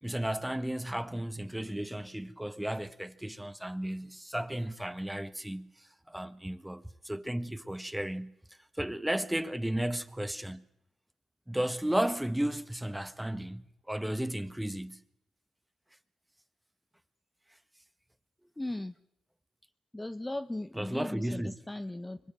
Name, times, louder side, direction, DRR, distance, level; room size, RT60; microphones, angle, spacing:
voice 1, 0.0-8.4 8.8-10.6 11.5-15.0 20.7-21.6, right 1 dB, 10° right, 1.7 m, -34 dB
voice 2, 18.6-18.9 19.9-22.2, left 1 dB, 15° left, 1.2 m, -37 dB
25.5 x 21.5 x 7.6 m
hypercardioid pair, 40°, 0 cm